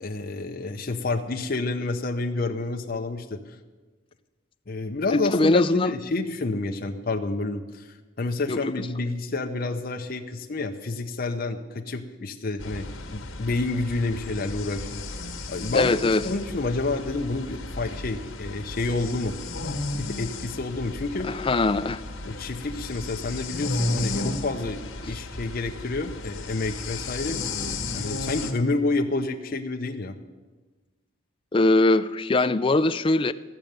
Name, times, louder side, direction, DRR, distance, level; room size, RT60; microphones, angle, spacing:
voice 1, 0.0-3.6 4.7-15.0 15.5-15.9 16.2-19.3 20.0-21.3 22.2-27.4 27.9-30.2, left 3 dB, 45° left, 4 dB, 0.7 m, -29 dB
voice 2, 5.3-5.9 8.5-8.9 15.7-16.2 21.2-22.0 25.1-25.2 31.5-33.3, left 2 dB, 25° left, 12 dB, 0.4 m, -21 dB
sound 1, 12.6-28.5, left 2 dB, 85° left, 1.3 m, -34 dB
14.5 x 6.6 x 8.8 m, 1.3 s
head